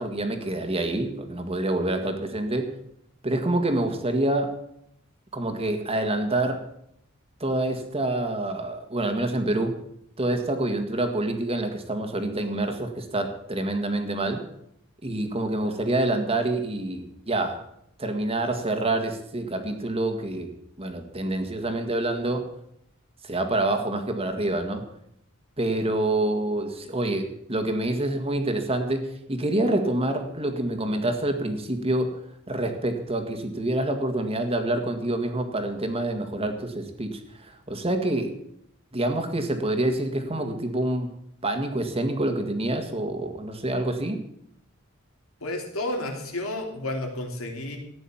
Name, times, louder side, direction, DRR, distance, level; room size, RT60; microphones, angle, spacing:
voice 1, 0.0-2.7 3.2-4.5 5.3-6.7 7.4-9.7 10.2-14.4 15.0-17.6 18.0-20.5 20.8-22.4 23.2-24.8 25.6-32.2 32.5-38.3 38.9-41.1 41.4-44.2, right 1 dB, 30° right, 5 dB, 1.8 m, -27 dB
voice 2, 45.4-47.8, left 1 dB, 85° left, 2 dB, 3.4 m, -31 dB
14.5 x 9.8 x 7.2 m, 0.75 s
head